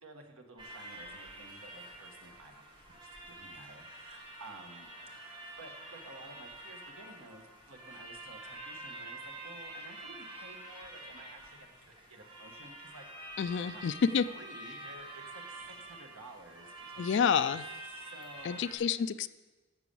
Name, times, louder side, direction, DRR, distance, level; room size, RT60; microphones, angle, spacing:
voice 1, 0.0-13.3 13.6-13.8 14.3-17.5 17.8-19.0, right 2 dB, 75° right, 3 dB, 1.5 m, -53 dB
sound 1, 0.6-18.8, right 1 dB, 20° right, 1.7 m, -47 dB
voice 2, 13.4-14.2 17.0-17.6 18.4-19.3, left 6 dB, 55° left, 16 dB, 0.3 m, -28 dB
11.0 x 6.9 x 6.9 m, 1.2 s
head